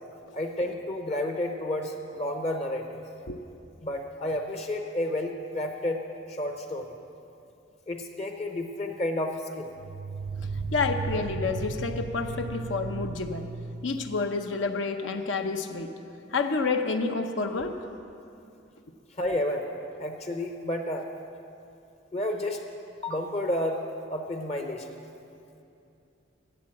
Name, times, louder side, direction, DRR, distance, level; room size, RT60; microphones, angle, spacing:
voice 1, 0.3-3.0 3.8-6.0 6.3-6.9 7.9-9.7 19.2-19.7 20.0-21.1 22.1-22.6 23.0-23.8 24.1-24.9, left 1 dB, 35° left, 4 dB, 0.7 m, -31 dB
sound 1, 4.3-4.4 9.8-14.3, right 4 dB, 70° right, 0.5 m, -35 dB
voice 2, 10.7-13.5 13.8-15.9 16.3-17.7, left 4 dB, 75° left, 6 dB, 0.7 m, -29 dB
12.0 x 8.5 x 7.5 m, 2.6 s
head